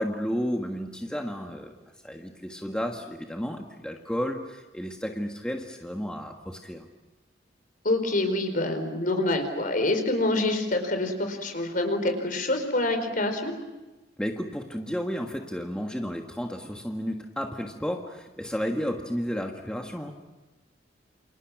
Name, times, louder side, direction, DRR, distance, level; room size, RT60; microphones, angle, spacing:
voice 1, 0.0-1.8 2.0-6.9 14.2-20.1, equal, 5° left, 2 dB, 1.6 m, -32 dB
voice 2, 7.8-13.5, left 2 dB, 50° left, 7 dB, 4.6 m, -26 dB
28.5 x 28.0 x 6.1 m, 1.1 s
head